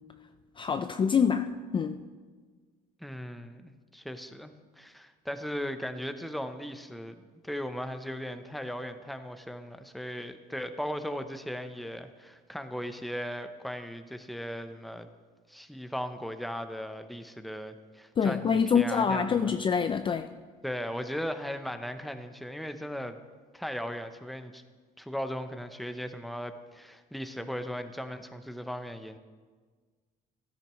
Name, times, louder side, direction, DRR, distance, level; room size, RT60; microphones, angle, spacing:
voice 1, 0.6-2.0 18.2-20.3, left 6 dB, 30° left, 9 dB, 0.4 m, -26 dB
voice 2, 3.0-15.1 15.5-19.5 20.6-23.2 23.5-24.6 25.0-29.2, equal, ahead, 8 dB, 0.7 m, -37 dB
15.0 x 12.5 x 3.1 m, 1.5 s
cardioid pair, 110°, 17 cm